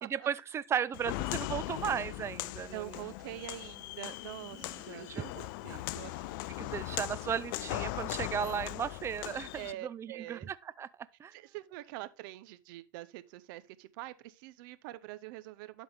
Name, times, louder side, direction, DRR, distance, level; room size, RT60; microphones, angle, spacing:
voice 1, 0.1-2.8 4.6-5.3 6.6-9.5 9.8-10.9 11.2-11.3, right 8 dB, 25° right, 0.4 m, -35 dB
Walk footsteps, 0.9-9.7, left 17 dB, 65° left, 0.4 m, -39 dB
voice 2, 2.7-6.5 9.5-10.5 11.3-15.8, right 16 dB, 65° right, 0.7 m, -45 dB
11.0 x 4.1 x 3.4 m
hypercardioid pair, 105°, 12 cm